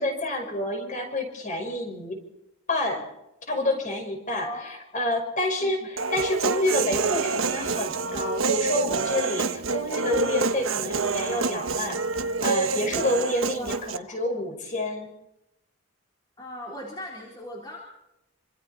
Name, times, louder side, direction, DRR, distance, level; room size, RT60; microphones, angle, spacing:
voice 1, 0.0-2.2 2.7-3.1 3.5-12.0 12.4-15.1, left 1 dB, 35° left, 3 dB, 5.8 m, -28 dB
voice 2, 4.3-4.6 5.6-5.9 13.5-14.2 16.4-17.8, equal, 20° left, -3 dB, 3.8 m, -39 dB
Human voice, 6.0-14.0, right 4 dB, 70° right, 1.2 m, -27 dB
27.0 x 26.0 x 4.4 m, 0.86 s
head